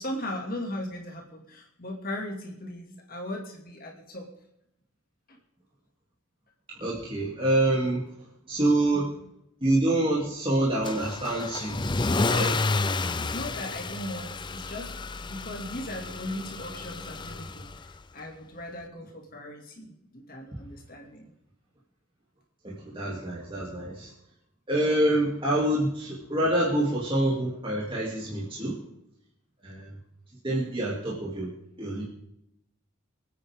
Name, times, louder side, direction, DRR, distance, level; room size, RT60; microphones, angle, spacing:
voice 1, 0.0-4.3 5.3-5.4 8.9-9.1 13.2-14.9 15.2-21.3, left 1 dB, 40° left, 1 dB, 2.4 m, -38 dB
voice 2, 6.8-8.0 8.5-9.1 9.6-11.8 12.3-12.6 22.6-24.1 24.7-28.8 29.6-29.9 30.4-31.5 31.8-32.0, right 1 dB, 25° right, -6 dB, 2.9 m, -26 dB
Car / Engine starting / Accelerating revving vroom, 10.8-18.0, left 3 dB, 20° left, 0.5 m, -30 dB
25.5 x 9.5 x 3.7 m, 0.79 s
head